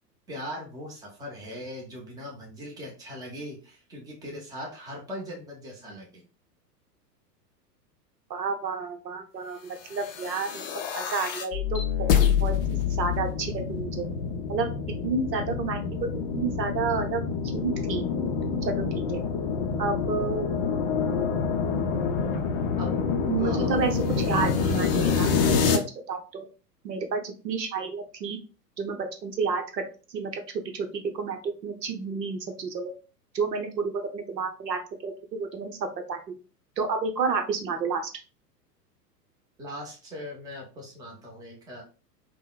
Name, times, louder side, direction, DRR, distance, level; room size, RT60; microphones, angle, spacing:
voice 1, 0.3-6.2 22.8-22.9 23.4-23.7 39.6-41.8, equal, 10° right, -1 dB, 0.7 m, -40 dB
voice 2, 8.3-10.6 10.9-11.8 12.4-14.1 14.5-14.7 15.0-15.8 16.3-17.2 17.5-18.0 18.7-18.8 19.1-19.2 19.8-20.5 23.3-23.9 24.2-25.3 25.7-25.8 26.1-26.4 26.8-28.4 28.8-29.8 30.1-30.4 30.7-32.9 33.3-35.8 36.1-36.2 36.8-38.0, right 5 dB, 80° right, 5 dB, 0.8 m, -30 dB
sound 1, 10.0-25.8, left 6 dB, 40° left, 0.4 m, -27 dB
3.6 x 2.1 x 2.3 m, 0.34 s
figure-of-eight pair, 95°, 49 cm